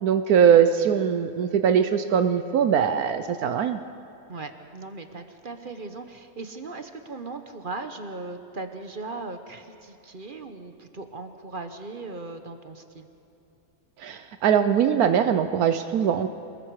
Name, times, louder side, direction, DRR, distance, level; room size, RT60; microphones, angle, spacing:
voice 1, 0.0-3.8 14.0-16.3, right 8 dB, 75° right, 9 dB, 1.2 m, -21 dB
voice 2, 4.3-13.1, right 3 dB, 40° right, 7 dB, 1.1 m, -38 dB
28.0 x 20.5 x 4.8 m, 2.8 s
omnidirectional pair, 1.6 m